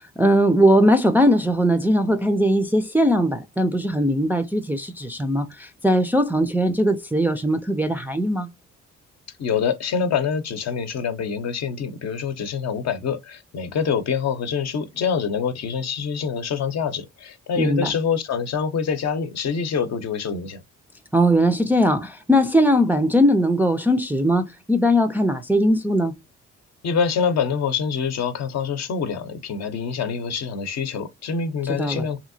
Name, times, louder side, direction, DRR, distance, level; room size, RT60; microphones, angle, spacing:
voice 1, 0.0-8.5 17.6-17.9 21.1-26.1 31.8-32.1, equal, 5° right, 0.4 m, -20 dB
voice 2, 9.4-20.6 26.8-32.2, left 6 dB, 60° left, 0.7 m, -25 dB
2.9 x 2.7 x 2.5 m
cardioid pair, 90°, 30 cm